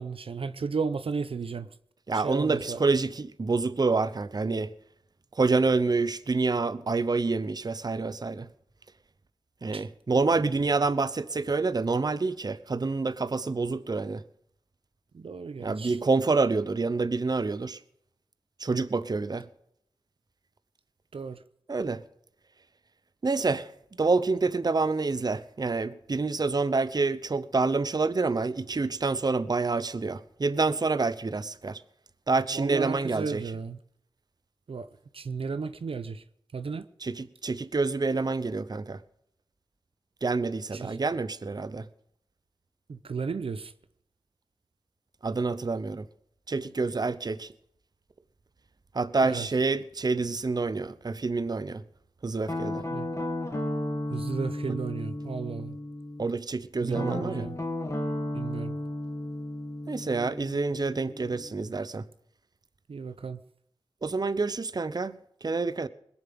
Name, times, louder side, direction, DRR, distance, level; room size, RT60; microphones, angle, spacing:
voice 1, 0.0-1.7 2.1-2.8 9.7-9.8 15.1-16.0 21.1-21.4 32.5-33.8 34.7-34.9 35.1-36.2 36.5-36.9 40.7-41.0 42.9-43.7 49.2-49.5 52.9-53.1 54.1-55.8 56.8-57.6 58.3-58.8 62.9-63.4, right 5 dB, 70° right, 0.8 m, -34 dB
voice 2, 2.1-4.7 5.4-8.5 9.6-14.2 15.6-17.8 18.6-19.5 21.7-22.0 23.2-23.7 24.0-31.8 32.3-33.4 37.0-39.0 40.2-41.8 45.2-46.1 46.5-47.5 48.9-51.8 52.2-52.8 56.2-57.5 59.9-62.0 64.0-65.9, right 3 dB, 45° right, 0.8 m, -27 dB
Guitar, 52.5-56.3 56.9-61.7, left 1 dB, 30° left, 3.0 m, -34 dB
21.0 x 7.3 x 7.8 m
wide cardioid pair, 65°, 10 cm